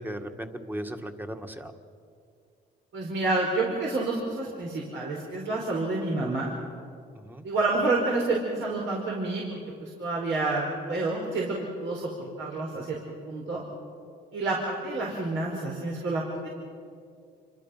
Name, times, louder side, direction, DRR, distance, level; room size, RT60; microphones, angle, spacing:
voice 1, 0.0-1.7 7.2-7.4, right 1 dB, 10° right, 6 dB, 1.9 m, -37 dB
voice 2, 2.9-6.5 7.4-13.0 13.2-13.6 14.3-16.5, right 2 dB, 70° right, -3 dB, 4.8 m, -29 dB
28.0 x 24.0 x 5.8 m, 2.3 s
cardioid pair, 90°, 20 cm